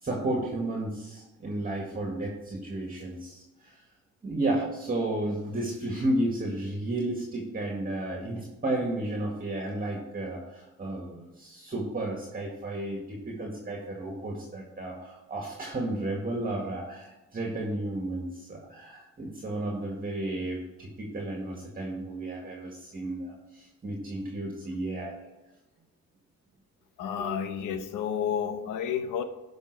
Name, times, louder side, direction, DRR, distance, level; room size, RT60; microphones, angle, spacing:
voice 1, 0.0-3.8 4.2-25.2 27.2-27.4, right 1 dB, 30° right, -1 dB, 2.0 m, -33 dB
voice 2, 27.0-29.2, left 8 dB, 85° left, 9 dB, 1.0 m, -31 dB
12.0 x 5.4 x 4.8 m, 1.0 s
cardioid pair, 90°, 30 cm